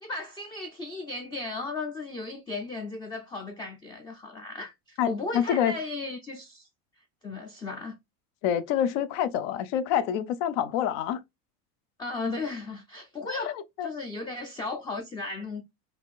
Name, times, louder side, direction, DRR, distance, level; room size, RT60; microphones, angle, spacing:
voice 1, 0.0-6.7 7.2-8.0 12.0-15.6, left 3 dB, 15° left, 0.3 m, -35 dB
voice 2, 5.0-5.7 8.4-11.2 13.3-13.9, left 9 dB, 75° left, 0.6 m, -27 dB
3.4 x 2.5 x 2.4 m
supercardioid pair, 120°, 37 cm